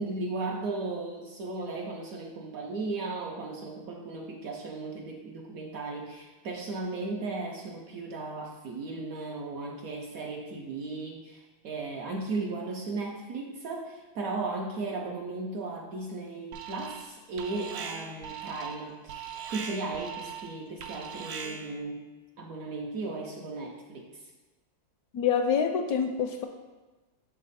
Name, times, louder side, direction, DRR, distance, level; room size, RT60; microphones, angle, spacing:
voice 1, 0.0-22.0 22.4-24.3, right 3 dB, 65° right, 0 dB, 0.9 m, -36 dB
Alarm, 16.5-17.1 17.4-21.8, right 7 dB, 85° right, 1.3 m, -40 dB
voice 2, 25.1-26.5, left 7 dB, 75° left, 5 dB, 0.9 m, -26 dB
6.8 x 4.1 x 4.0 m, 1.2 s
omnidirectional pair, 2.0 m